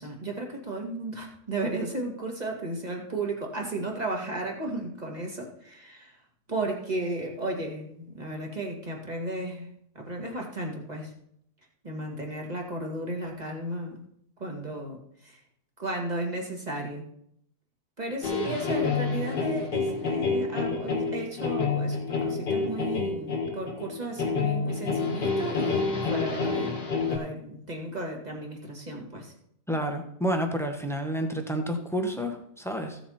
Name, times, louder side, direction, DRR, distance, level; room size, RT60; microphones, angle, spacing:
voice 1, 0.0-6.2 6.5-11.1 11.8-14.0 14.4-15.4 15.8-17.0 18.0-29.3, right 2 dB, 25° right, 0 dB, 2.2 m, -34 dB
sound 1, 18.2-27.2, left 4 dB, 90° left, 2.7 m, -28 dB
voice 2, 29.7-33.0, equal, ahead, 4 dB, 1.1 m, -29 dB
15.5 x 7.1 x 4.3 m, 0.70 s
omnidirectional pair, 1.8 m